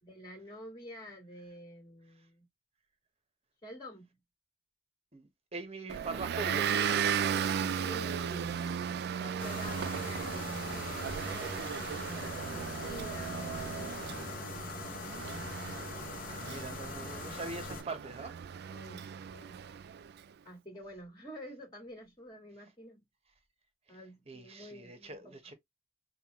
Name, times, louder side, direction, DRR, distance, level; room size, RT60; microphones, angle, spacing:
voice 1, 0.0-2.5 3.6-4.1 6.7-14.0 18.7-19.0 19.3-19.6 20.4-23.0 23.9-25.5, equal, 20° left, 1.9 m, -49 dB
voice 2, 5.1-6.8 7.3-7.5 16.3-18.3 24.3-25.5, right 3 dB, 30° right, 1.0 m, -42 dB
Motor vehicle (road) / Engine, 5.9-20.1, right 7 dB, 50° right, 0.3 m, -36 dB
sound 1, 9.4-17.8, left 4 dB, 45° left, 0.8 m, -42 dB
5.5 x 2.3 x 3.0 m
head